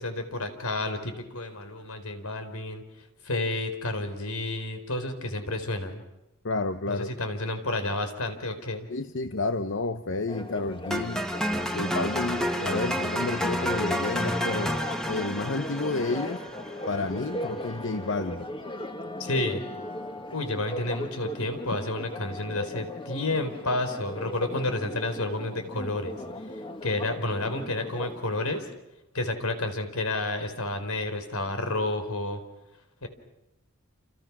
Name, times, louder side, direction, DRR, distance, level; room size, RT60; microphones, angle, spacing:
voice 1, 0.0-2.8 3.2-6.0 6.9-8.9 19.2-19.6 20.3-26.2 26.8-28.7 29.1-32.4 33.0-33.1, left 2 dB, 85° left, 8 dB, 4.3 m, -30 dB
voice 2, 6.4-7.1 8.9-11.3 11.7-14.8 15.1-16.4 16.9-18.5, left 3 dB, 60° left, 9 dB, 1.0 m, -30 dB
Church bell, 10.3-28.6, left 1 dB, 25° left, 1.9 m, -38 dB
sound 1, 10.9-17.0, equal, 5° left, 1.8 m, -30 dB
29.5 x 28.5 x 6.2 m, 0.91 s
head